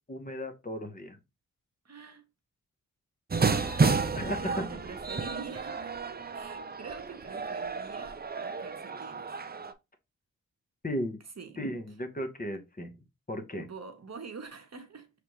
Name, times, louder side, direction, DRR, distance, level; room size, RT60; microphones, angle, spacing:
voice 1, 0.1-1.2 4.1-4.7 10.8-11.2 11.6-12.9 13.3-13.7, equal, 25° left, 1.0 m, -35 dB
voice 2, 1.8-2.3 3.4-4.1 4.4-5.9 6.3-9.3 11.4-11.6 13.6-15.1, right 5 dB, 45° right, 1.0 m, -45 dB
sound 1, 3.3-9.7, right 4 dB, 25° right, 0.6 m, -31 dB
5.0 x 3.4 x 3.0 m
cardioid pair, 55°, 36 cm